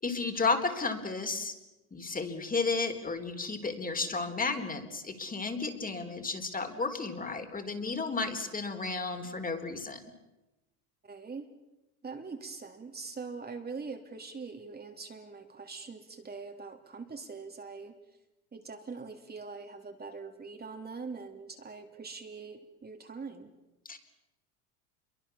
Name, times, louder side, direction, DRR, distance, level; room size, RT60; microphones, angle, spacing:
voice 1, 0.0-1.6 1.9-10.1 23.8-24.0, left 4 dB, 20° left, 6 dB, 4.1 m, -33 dB
voice 2, 11.0-11.5 12.0-17.9 18.5-23.5, right 4 dB, 20° right, 5 dB, 3.2 m, -43 dB
28.5 x 23.5 x 7.2 m, 1.0 s
hypercardioid pair, 85°, 44 cm